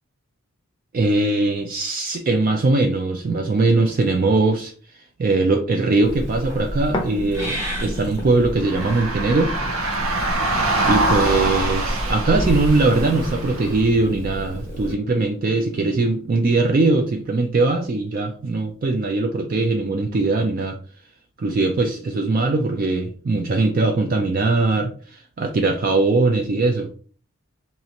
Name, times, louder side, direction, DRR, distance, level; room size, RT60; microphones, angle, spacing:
voice 1, 0.9-4.7 5.2-9.5 10.9-20.8 21.4-26.9, right 3 dB, 40° right, 4 dB, 0.3 m, -21 dB
Purr / Meow, 6.0-14.9, equal, 15° right, 1.3 m, -30 dB
sound 1, 6.9-16.9 17.5-17.6, left 1 dB, 20° left, 0.5 m, -36 dB
sound 2, 8.6-13.8, right 2 dB, 70° right, 0.8 m, -24 dB
4.0 x 2.4 x 2.8 m, 0.43 s
head